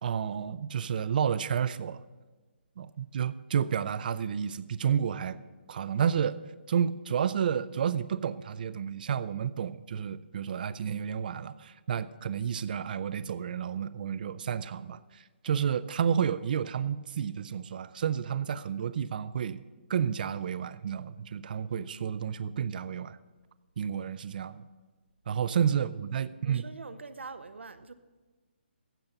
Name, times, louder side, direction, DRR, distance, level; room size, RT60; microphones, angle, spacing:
voice 1, 0.0-2.0 2.8-5.4 5.7-19.6 19.9-23.2 23.8-24.6 25.3-26.6, right 8 dB, 50° right, 0.5 m, -31 dB
voice 2, 26.4-27.9, right 4 dB, 85° right, 0.8 m, -44 dB
15.0 x 5.3 x 7.1 m
hypercardioid pair, 150°, 6 cm